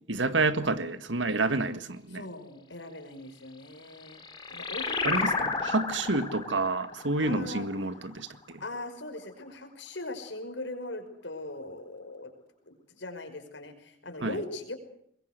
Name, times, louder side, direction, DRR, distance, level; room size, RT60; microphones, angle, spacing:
voice 1, 0.1-2.2 5.0-8.6 14.2-14.4, right 3 dB, 85° right, 1.8 m, -29 dB
voice 2, 2.1-4.2 4.5-5.6 7.2-7.7 8.6-12.3 12.7-14.7, left 2 dB, 75° left, 5.6 m, -40 dB
sound 1, 3.7-8.8, left 4 dB, 25° left, 3.5 m, -33 dB
23.5 x 22.0 x 8.1 m
head